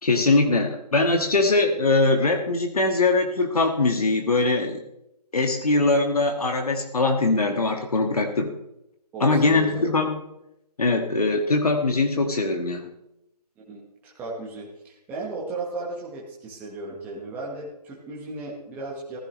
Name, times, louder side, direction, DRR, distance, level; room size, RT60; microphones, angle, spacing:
voice 1, 0.0-4.8 5.3-8.5 9.2-10.2 10.8-12.9, left 3 dB, 60° left, 4 dB, 1.7 m, -22 dB
voice 2, 9.1-9.9 13.7-19.2, right 3 dB, 10° right, -4 dB, 1.4 m, -35 dB
15.0 x 14.0 x 3.2 m, 0.83 s
figure-of-eight pair, 150°, 21 cm